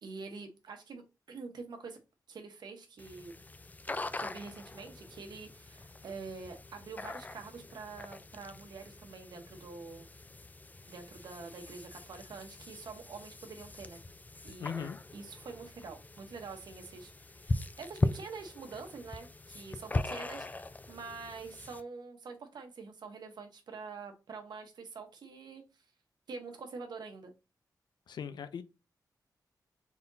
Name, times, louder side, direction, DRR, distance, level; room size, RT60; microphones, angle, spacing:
voice 1, 0.0-2.0 2.3-3.4 4.2-10.1 10.9-14.0 14.4-14.8 15.1-25.6 26.3-27.3, right 4 dB, 75° right, 1.1 m, -46 dB
sound 1, 3.0-21.8, left 2 dB, 20° left, 0.4 m, -40 dB
voice 2, 14.6-15.0 28.1-28.6, left 7 dB, 80° left, 0.5 m, -39 dB
4.2 x 3.8 x 2.6 m
cardioid pair, 85°, 7 cm